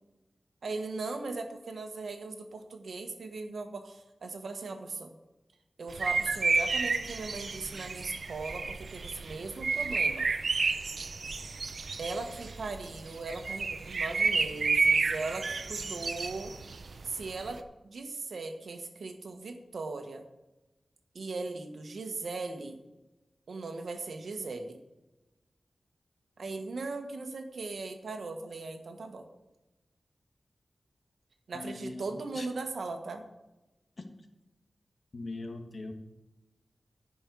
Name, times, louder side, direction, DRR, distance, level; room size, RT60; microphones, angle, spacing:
voice 1, 0.6-5.1 5.8-10.3 12.0-16.5 17.0-20.2 21.1-22.8 23.5-24.8 26.4-29.2 31.5-33.2, right 3 dB, 85° right, 5 dB, 1.3 m, -38 dB
sound 1, 5.9-17.6, right 4 dB, 70° right, 0.7 m, -31 dB
voice 2, 31.5-32.5 35.1-35.9, left 2 dB, 55° left, 4 dB, 1.5 m, -41 dB
11.0 x 5.4 x 8.3 m, 1.0 s
wide cardioid pair, 100°, 0 cm